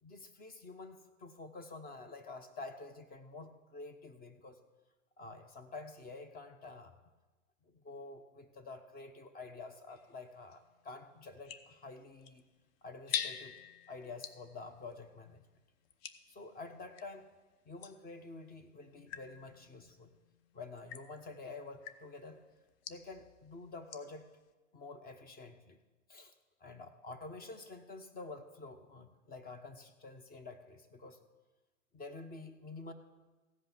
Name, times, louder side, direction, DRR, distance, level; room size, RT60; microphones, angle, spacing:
voice 1, 0.0-4.6 5.2-7.0 7.7-12.4 12.8-13.6 13.9-15.4 16.3-17.3 17.6-20.1 20.5-22.5 22.9-24.3 24.7-25.8 26.1-26.3 26.6-31.2 31.9-32.9, left 3 dB, 25° left, 8 dB, 1.2 m, -49 dB
sound 1, 9.9-17.2 17.8-24.2, left 8 dB, 50° left, 0.9 m, -47 dB
15.5 x 5.4 x 9.3 m, 1.2 s
hypercardioid pair, 105°, 39 cm